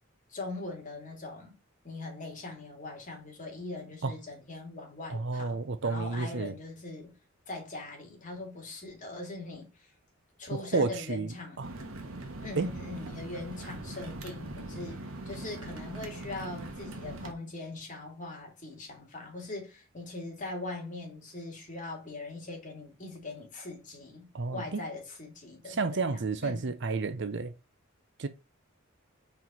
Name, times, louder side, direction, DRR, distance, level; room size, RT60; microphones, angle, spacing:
voice 1, 0.3-1.5 1.8-7.1 7.5-9.9 10.4-11.9 12.4-26.7, left 2 dB, 35° left, 2.5 m, -41 dB
voice 2, 5.1-6.5 10.5-11.7 12.6-12.7 24.3-24.8 25.8-27.5 28.2-28.3, right 4 dB, 55° right, 0.7 m, -31 dB
sound 1, 11.6-17.3, right 2 dB, 80° right, 1.2 m, -41 dB
4.5 x 4.5 x 5.3 m
head